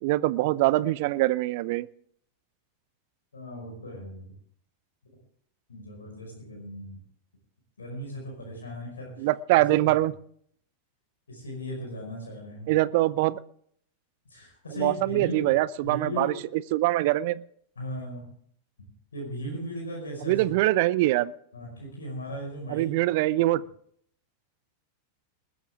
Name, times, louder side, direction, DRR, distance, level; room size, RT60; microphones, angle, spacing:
voice 1, 0.0-1.9 9.2-10.1 12.7-13.4 14.7-17.4 20.3-21.3 22.7-23.6, right 17 dB, 50° right, 20 dB, 0.5 m, -24 dB
voice 2, 3.3-4.3 5.7-7.0 7.8-9.3 9.8-9.9 11.3-12.7 14.3-15.5 15.8-16.4 17.8-18.3 18.8-18.9 19.1-20.5 21.5-23.0, equal, 70° left, -1 dB, 5.2 m, -37 dB
20.5 x 13.0 x 3.6 m, 0.63 s
figure-of-eight pair, 90°, 0 cm